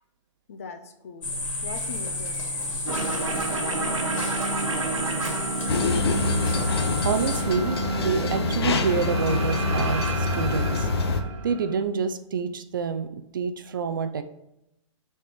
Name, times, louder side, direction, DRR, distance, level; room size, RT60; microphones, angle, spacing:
voice 1, 0.5-2.5 3.1-4.5, left 5 dB, 30° left, 8 dB, 0.5 m, -42 dB
sound 1, 1.2-7.4, left 2 dB, 80° left, 2.5 m, -31 dB
sound 2, 2.8-11.8, right 4 dB, 75° right, 1.1 m, -30 dB
sound 3, 5.7-11.2, left 4 dB, 50° left, 0.8 m, -26 dB
voice 2, 7.0-7.8 8.0-10.9 11.4-13.1 13.3-14.2, right 6 dB, 40° right, 10 dB, 0.4 m, -27 dB
6.4 x 4.3 x 6.4 m, 0.84 s
hypercardioid pair, 175°, 16 cm